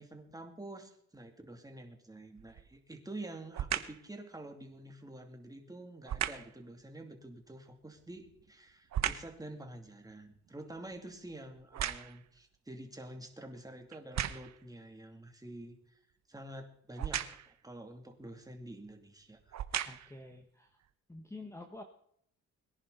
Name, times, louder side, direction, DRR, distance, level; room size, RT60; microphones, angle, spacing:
voice 1, 0.0-15.8 16.3-19.6, right 1 dB, 10° right, 4 dB, 2.8 m, -48 dB
sound 1, 2.4-2.8 3.5-4.1 6.1-6.6 8.0-9.4 9.9-12.4 13.0-13.1 13.9-14.6 17.0-17.6 18.6-18.7 19.4-20.2 20.8-20.9, right 10 dB, 60° right, 1.2 m, -37 dB
voice 2, 19.8-20.8 21.1-21.8, left 2 dB, 10° left, 5 dB, 1.5 m, -48 dB
22.5 x 10.5 x 4.1 m, 0.69 s
cardioid pair, 90°, 30 cm